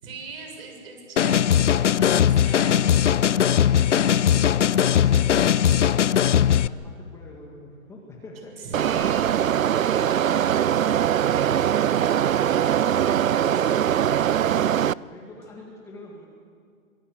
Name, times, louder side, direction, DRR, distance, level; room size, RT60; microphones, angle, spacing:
voice 1, 0.0-6.0 6.3-6.6 8.4-14.0, right 4 dB, 45° right, 2 dB, 7.2 m, -42 dB
sound 1, 1.2-6.7, left 9 dB, 55° left, 0.6 m, -19 dB
voice 2, 6.6-8.5 15.0-16.3, left 2 dB, 5° left, -2 dB, 2.0 m, -44 dB
sound 2, 8.7-14.9, right 10 dB, 70° right, 0.6 m, -22 dB
25.0 x 21.5 x 8.1 m, 2.1 s
hypercardioid pair, 150°, 43 cm